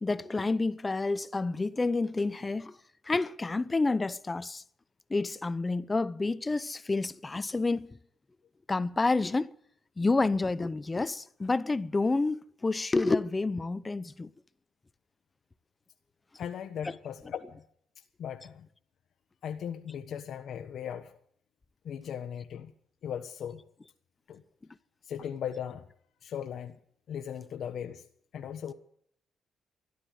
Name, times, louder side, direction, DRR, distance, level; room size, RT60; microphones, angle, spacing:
voice 1, 0.0-2.8 3.0-4.6 5.1-7.9 8.7-9.5 10.0-14.3 16.8-16.9, left 3 dB, 20° left, 0.8 m, -29 dB
voice 2, 16.4-17.6 18.0-18.7 19.4-21.2 21.8-22.7 23.0-23.6 24.3-24.4 25.0-25.9 26.2-26.8 27.1-28.0 28.3-28.7, left 8 dB, 65° left, 1.3 m, -38 dB
14.0 x 11.5 x 8.0 m
cardioid pair, 90°, 0 cm